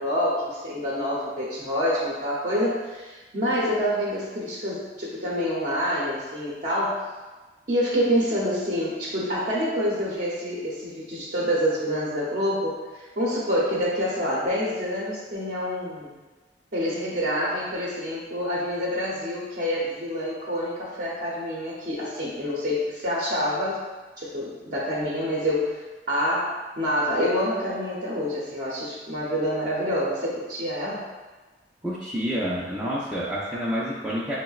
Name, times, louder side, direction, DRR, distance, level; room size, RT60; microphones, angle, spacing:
voice 1, 0.0-7.1 7.7-16.1 16.7-23.9 24.2-25.8 26.1-31.1, equal, 50° right, -6 dB, 0.7 m, -27 dB
voice 2, 31.8-34.4, equal, 10° right, -9 dB, 0.4 m, -28 dB
6.1 x 2.1 x 2.3 m, 1.3 s
head